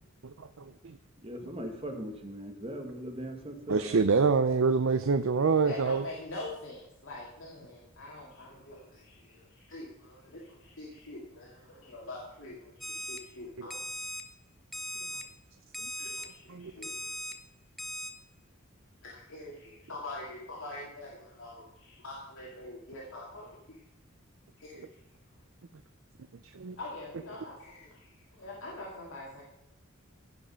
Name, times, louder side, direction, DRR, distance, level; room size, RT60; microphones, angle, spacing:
voice 1, 0.2-1.0 3.7-6.0 13.6-13.7 16.5-16.7 26.5-26.8, right 4 dB, 75° right, 10 dB, 0.5 m, -26 dB
voice 2, 1.2-4.0, right 1 dB, 30° right, 4 dB, 1.6 m, -39 dB
voice 3, 5.6-13.8 16.0-17.3 19.0-23.8 24.6-24.8 26.8-29.4, left 2 dB, 75° left, -4 dB, 2.3 m, -44 dB
Alarm, 12.8-13.2 13.7-14.2 14.7-15.2 15.7-16.2 16.8-17.3 17.8-18.1, equal, ahead, 0.8 m, -38 dB
15.5 x 5.4 x 5.6 m, 0.85 s
head